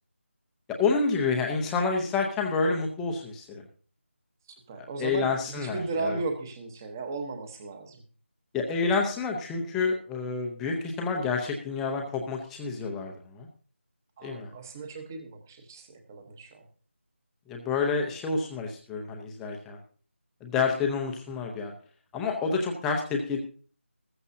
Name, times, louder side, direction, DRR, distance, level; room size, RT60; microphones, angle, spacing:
voice 1, 0.7-3.6 4.8-6.2 8.5-13.5 14.2-14.5 17.5-19.8 20.4-21.7 22.1-23.4, left 4 dB, 5° left, 1 dB, 0.7 m, -29 dB
voice 2, 4.7-8.0 14.2-16.6, right 3 dB, 15° right, 6 dB, 1.0 m, -36 dB
14.5 x 14.0 x 2.7 m, 0.40 s
figure-of-eight pair, 170°, 7 cm